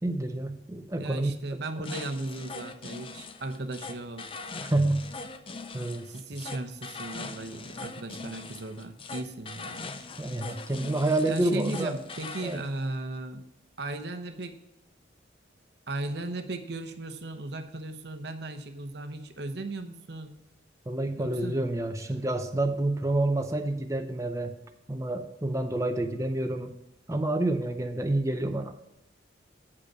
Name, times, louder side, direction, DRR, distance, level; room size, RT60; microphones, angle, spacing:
voice 1, 0.0-1.3 4.6-5.1 5.7-6.1 10.2-11.9 12.4-12.6 20.9-24.5 24.9-26.7 27.1-28.7, right 2 dB, 15° right, 6 dB, 0.6 m, -28 dB
voice 2, 1.0-4.3 6.1-9.8 10.5-10.6 11.2-13.5 13.8-14.6 15.9-20.3 21.1-21.6, right 2 dB, 60° right, 7 dB, 0.9 m, -36 dB
sound 1, 1.8-12.6, left 3 dB, 30° left, 0.5 m, -41 dB
8.4 x 5.2 x 6.1 m, 0.91 s
head